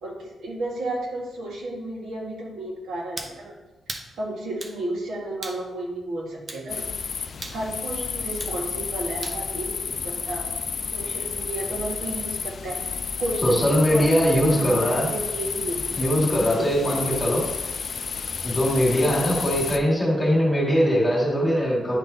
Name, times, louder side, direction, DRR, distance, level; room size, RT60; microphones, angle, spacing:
voice 1, 0.0-3.5 4.2-6.8 7.5-12.8 13.2-15.8 16.5-17.0 19.0-19.4, right 1 dB, 85° right, -3 dB, 1.7 m, -33 dB
sound 1, 3.2-3.4 3.9-4.1 4.6-4.8 5.4-5.6 6.5-6.7 7.4-7.6 8.4-8.6 9.2-9.4, right 2 dB, 30° right, 0.6 m, -36 dB
sound 2, 6.7-19.8, left 5 dB, 45° left, 0.3 m, -31 dB
voice 2, 13.4-15.1 15.9-17.4 18.4-22.0, equal, 10° left, -6 dB, 2.0 m, -21 dB
9.9 x 3.7 x 2.8 m, 1.0 s
wide cardioid pair, 165°, 0 cm